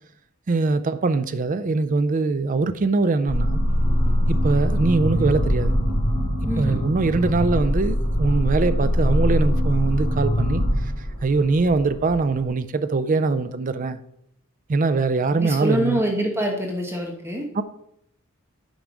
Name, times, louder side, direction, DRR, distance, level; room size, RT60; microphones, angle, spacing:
voice 1, 0.5-3.6 4.3-5.8 6.4-10.9 11.2-14.0 14.7-16.0 17.6-17.7, right 3 dB, 40° right, 0.4 m, -22 dB
sound 1, 3.3-12.4, equal, 75° left, 2.7 m, -23 dB
voice 2, 6.4-6.8 15.4-17.4, right 1 dB, 10° right, 1.1 m, -25 dB
9.1 x 4.7 x 5.1 m
head